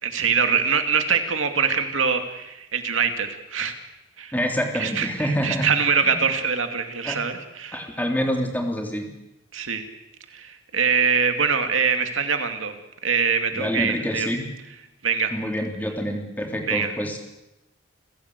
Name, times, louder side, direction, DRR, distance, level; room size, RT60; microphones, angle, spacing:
voice 1, 0.0-3.7 4.2-4.3 4.7-7.9 9.5-9.9 10.3-12.7 13.0-14.3 15.0-15.3 16.7-16.9, right 6 dB, 90° right, 6 dB, 2.5 m, -23 dB
voice 2, 4.3-5.7 6.0-6.2 7.0-7.2 7.7-9.1 13.5-14.4 15.3-17.2, equal, 10° left, 2 dB, 3.2 m, -27 dB
29.0 x 15.5 x 8.3 m, 0.93 s
head